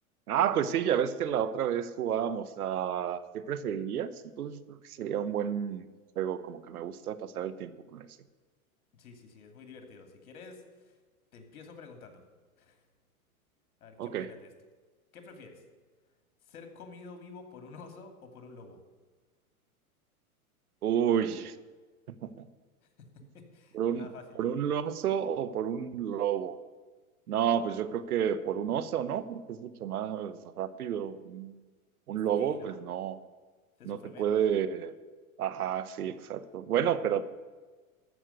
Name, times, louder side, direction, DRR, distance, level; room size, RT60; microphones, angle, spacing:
voice 1, 0.3-5.9 6.2-8.1 14.0-14.3 20.8-21.5 22.1-22.5 23.7-24.1 24.3-26.6 27.3-31.6 32.1-33.2 33.8-34.9 35.4-37.3, right 9 dB, 85° right, 14 dB, 1.1 m, -31 dB
voice 2, 9.0-11.0 11.3-12.2 12.6-12.8 13.8-14.5 15.1-15.6 16.4-18.8 23.0-24.5 32.4-32.8 33.8-34.4, left 4 dB, 75° left, 6 dB, 2.8 m, -50 dB
14.0 x 6.4 x 8.2 m, 1.4 s
hypercardioid pair, 115°, 43 cm